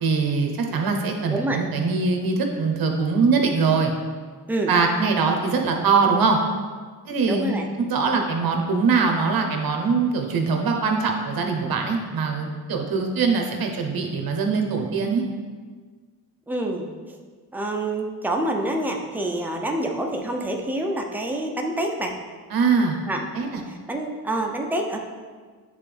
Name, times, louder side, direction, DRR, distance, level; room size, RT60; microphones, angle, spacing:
voice 1, 0.0-3.9 4.7-6.4 7.0-7.6 7.9-15.2 22.5-23.0 23.3-23.6, right 4 dB, 60° right, 3 dB, 1.0 m, -22 dB
voice 2, 1.3-1.6 4.5-4.7 7.2-7.7 8.1-8.2 16.5-16.9 17.5-22.1 23.1-23.2 23.7-25.0, right 1 dB, 5° right, 1 dB, 0.7 m, -27 dB
8.1 x 3.5 x 3.4 m, 1.5 s
cardioid pair, 75°, 41 cm